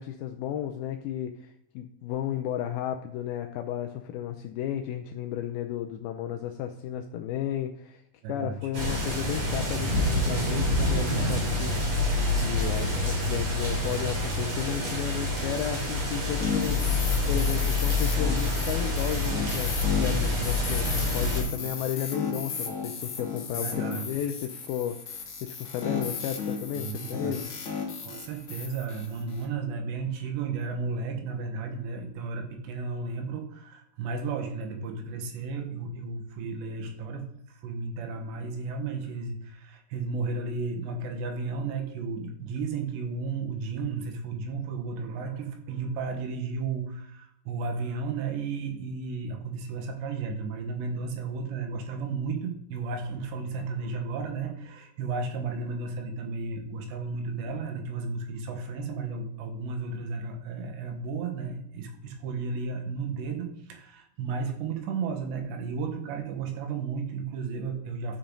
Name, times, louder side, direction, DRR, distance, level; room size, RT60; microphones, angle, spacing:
voice 1, 0.0-8.0 8.3-12.0 12.4-27.5, left 10 dB, 85° left, 5 dB, 2.2 m, -33 dB
voice 2, 8.2-8.6 21.4-21.8 23.5-24.1 26.8-27.4 28.0-68.2, right 4 dB, 85° right, 4 dB, 3.5 m, -33 dB
sound 1, 8.7-21.4, left 2 dB, 45° right, 4.2 m, -27 dB
sound 2, 16.4-29.4, left 5 dB, 55° left, 1.4 m, -35 dB
12.0 x 7.2 x 3.8 m, 0.76 s
omnidirectional pair, 4.9 m